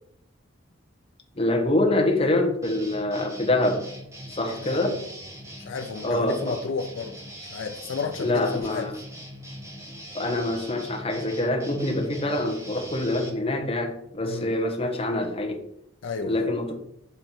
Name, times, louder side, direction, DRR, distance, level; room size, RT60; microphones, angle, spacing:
voice 1, 1.3-3.9 4.3-5.0 6.0-6.6 8.2-8.9 10.1-15.6 16.2-16.7, left 1 dB, 30° left, 2 dB, 1.0 m, -25 dB
sound 1, 2.6-13.3, equal, 15° right, 1.1 m, -41 dB
voice 2, 4.6-4.9 5.6-7.1 7.4-8.9 14.2-14.6 16.0-16.5, left 4 dB, 85° left, 4 dB, 0.5 m, -32 dB
7.1 x 3.8 x 4.4 m, 0.75 s
head